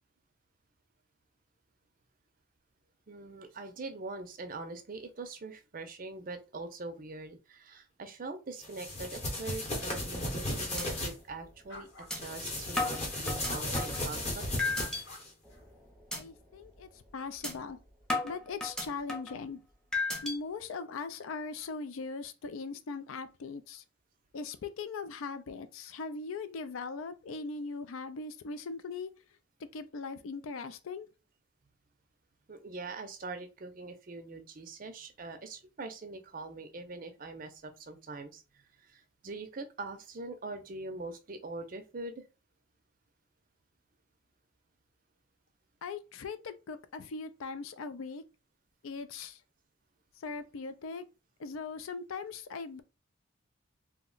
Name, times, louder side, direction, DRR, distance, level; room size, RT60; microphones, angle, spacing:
voice 1, 3.1-11.9 12.1-14.6 32.5-38.4 38.9-42.2, right 3 dB, 40° right, 0.5 m, -43 dB
sound 1, 8.6-11.1 12.1-15.3, left 1 dB, 30° left, 0.9 m, -35 dB
sound 2, 10.1-10.4 10.8-10.9 11.3-11.4 12.1-12.2 12.8-14.0 14.6-15.0 15.5-15.7 16.1-16.2 16.6-16.8 17.4-17.5 18.1-19.4 19.9-20.4, left 3 dB, 5° left, 0.6 m, -33 dB
sound 3, 11.7-12.1 13.1-13.9 14.7-15.6, left 1 dB, 65° left, 0.9 m, -49 dB
voice 2, 16.1-17.8 18.2-19.6 20.2-23.8 24.3-29.1 29.7-31.1 45.8-48.2 48.8-49.4 50.2-51.1 51.4-52.8, left 4 dB, 80° left, 0.4 m, -40 dB
2.8 x 2.1 x 3.8 m
head